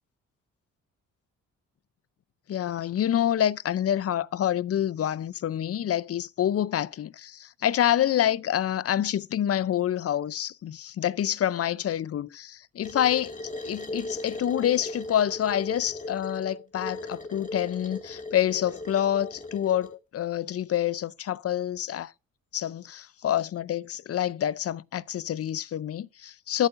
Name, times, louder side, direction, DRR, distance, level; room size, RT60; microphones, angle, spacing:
voice 1, 2.5-13.3 13.6-22.1 22.5-26.7, left 11 dB, 45° left, 0.5 m, -27 dB
sound 1, 12.8-19.9, left 2 dB, 20° left, 2.1 m, -38 dB
13.5 x 8.8 x 2.5 m
supercardioid pair, 60°, 34 cm